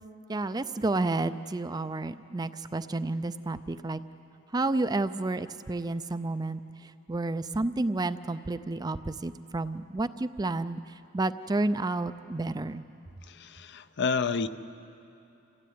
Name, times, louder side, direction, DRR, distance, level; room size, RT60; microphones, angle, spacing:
voice 1, 0.3-4.0 4.5-6.6 7.1-10.8 11.1-12.8, right 2 dB, 20° right, 12 dB, 0.4 m, -30 dB
voice 2, 13.4-14.5, left 5 dB, 55° left, 12 dB, 0.7 m, -29 dB
26.5 x 16.0 x 9.4 m, 2.8 s
head